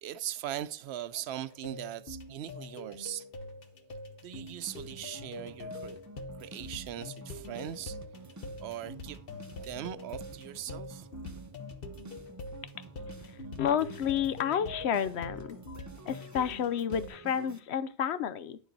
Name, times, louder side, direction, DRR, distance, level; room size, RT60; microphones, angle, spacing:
voice 1, 0.0-3.3 4.2-6.0 6.4-8.3 8.6-11.1, right 11 dB, 75° right, 0.9 m, -40 dB
sound 1, 1.4-17.1, left 2 dB, 60° left, 1.2 m, -44 dB
sound 2, 4.7-17.6, right 3 dB, 20° right, 0.6 m, -50 dB
voice 2, 13.6-15.6 16.1-18.6, left 8 dB, 85° left, 0.9 m, -30 dB
10.5 x 7.2 x 4.0 m
omnidirectional pair, 1.1 m